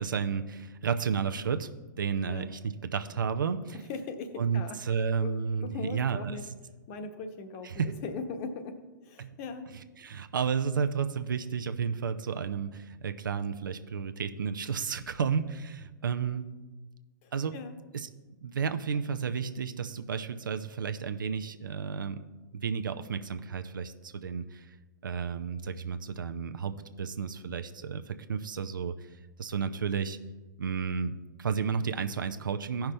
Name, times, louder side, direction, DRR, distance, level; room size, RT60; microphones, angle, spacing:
voice 1, 0.0-1.7 2.0-3.8 4.4-6.4 7.6-7.9 9.2-9.4 10.0-16.6 17.3-17.5 17.9-18.1 18.4-22.3 22.5-24.7 25.0-29.1 29.4-30.2 30.6-32.9, right 6 dB, 80° right, 8 dB, 0.7 m, -32 dB
voice 2, 3.9-5.3 5.6-6.4 6.9-9.7 17.2-17.7, left 4 dB, 45° left, 7 dB, 1.1 m, -40 dB
15.0 x 5.9 x 3.3 m, 1.2 s
hypercardioid pair, 120°, 11 cm